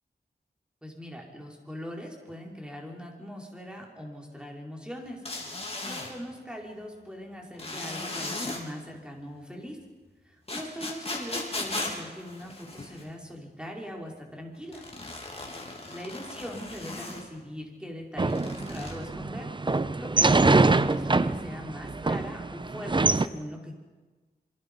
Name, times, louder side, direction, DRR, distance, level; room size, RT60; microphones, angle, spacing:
voice 1, 0.8-5.2 5.8-9.8 10.2-14.8 15.9-23.8, equal, 5° right, -1 dB, 4.9 m, -41 dB
sound 1, 5.3-6.1 7.6-8.6 10.5-13.1 14.7-17.2 18.3-18.9, left 2 dB, 35° left, 4.0 m, -36 dB
sound 2, 18.2-23.3, right 3 dB, 25° right, 0.7 m, -24 dB
27.0 x 24.5 x 5.5 m, 1.3 s
wide cardioid pair, 105°, 17 cm